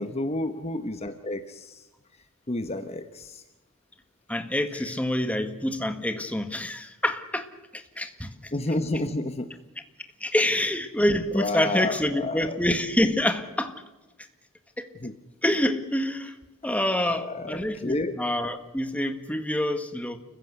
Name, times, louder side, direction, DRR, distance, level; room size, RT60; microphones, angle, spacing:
voice 1, 0.0-1.8 2.5-3.4 8.5-9.5 11.3-12.6 15.0-15.1 17.0-18.2, left 2 dB, 30° left, 9 dB, 1.1 m, -30 dB
voice 2, 4.3-8.5 10.2-13.8 14.8-14.9 15.4-16.4 16.6-20.2, left 1 dB, 5° left, 8 dB, 1.7 m, -27 dB
29.0 x 15.5 x 8.1 m, 1.1 s
head